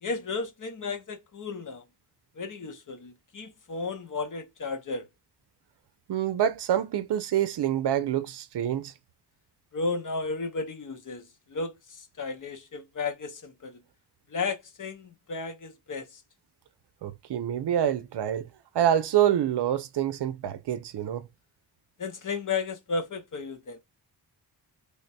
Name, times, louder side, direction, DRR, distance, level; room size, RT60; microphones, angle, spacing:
voice 1, 0.0-1.8 2.4-5.1 9.7-13.8 14.3-16.1 22.0-23.8, left 4 dB, 50° left, 0.8 m, -34 dB
voice 2, 6.1-8.9 17.0-18.5 18.7-21.3, right 10 dB, 75° right, 0.6 m, -26 dB
3.4 x 2.2 x 4.0 m
wide cardioid pair, 145°, 41 cm